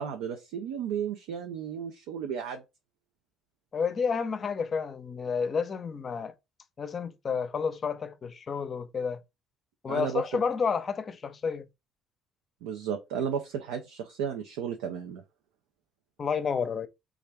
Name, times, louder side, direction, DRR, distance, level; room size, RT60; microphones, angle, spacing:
voice 1, 0.0-2.6 9.9-10.4 12.6-15.2, right 8 dB, 85° right, 0.4 m, -34 dB
voice 2, 3.7-6.3 6.8-9.2 9.8-11.7 16.2-16.9, left 6 dB, 45° left, 0.5 m, -30 dB
3.0 x 2.4 x 3.3 m
hypercardioid pair, 60°, 0 cm